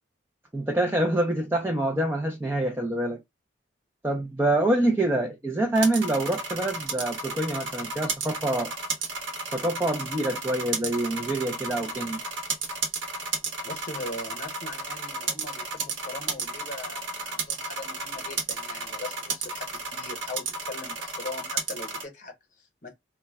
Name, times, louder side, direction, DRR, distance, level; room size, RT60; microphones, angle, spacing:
voice 1, 0.5-3.2 4.0-8.7 9.5-12.2, right 1 dB, 10° right, 0.4 m, -26 dB
sound 1, 5.7-22.0, right 3 dB, 80° right, 0.9 m, -33 dB
voice 2, 13.6-22.9, left 2 dB, 40° left, 0.9 m, -40 dB
2.2 x 2.1 x 3.3 m
head